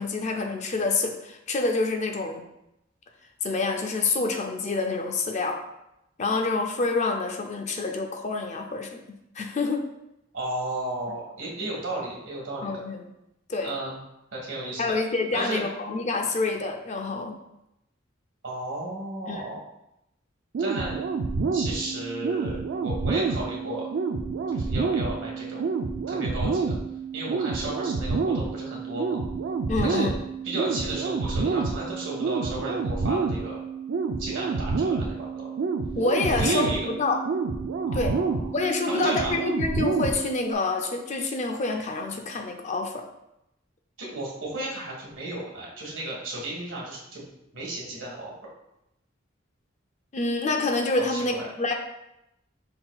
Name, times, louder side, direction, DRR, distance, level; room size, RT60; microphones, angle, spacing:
voice 1, 0.0-2.4 3.4-5.6 6.2-9.9 12.6-13.0 13.5-13.8 14.8-17.4 19.3-19.4 29.7-30.2 35.9-37.2 37.9-38.2 38.5-43.1 50.1-51.7, left 3 dB, 40° left, 4 dB, 0.5 m, -27 dB
voice 2, 10.3-12.7 13.6-14.0 14.3-15.0 15.3-15.6 18.4-19.6 20.6-21.0 21.5-23.9 24.5-25.7 26.1-26.8 27.1-29.2 29.8-30.1 30.4-33.6 34.2-35.5 36.3-36.9 37.9-38.5 38.8-39.4 44.0-47.2 47.5-48.3 51.0-51.5, right 1 dB, 85° right, -4 dB, 1.6 m, -34 dB
sound 1, 20.5-40.5, right 4 dB, 65° right, 0.4 m, -28 dB
5.5 x 3.8 x 2.3 m, 0.86 s
head